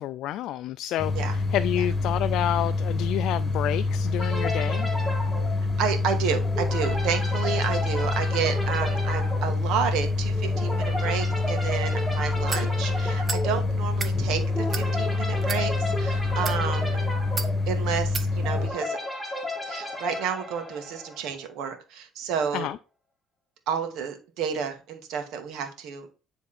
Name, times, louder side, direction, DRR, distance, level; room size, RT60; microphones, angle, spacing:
voice 1, 0.0-4.9 22.5-22.8, left 12 dB, 70° left, 0.3 m, -29 dB
sound 1, 1.0-18.7, left 3 dB, 20° left, 1.8 m, -26 dB
sound 2, 4.2-21.4, left 1 dB, ahead, 2.0 m, -34 dB
voice 2, 5.8-17.0 17.7-19.0 19.7-22.7 23.7-26.2, right 7 dB, 75° right, 1.7 m, -30 dB
sound 3, 12.5-12.7 13.3-13.5 13.9-14.1 14.7-14.9 15.4-15.6 16.3-16.6 17.4-17.5 18.1-18.3, right 4 dB, 35° right, 1.1 m, -32 dB
9.8 x 3.6 x 4.3 m
cardioid pair, 100°, 0 cm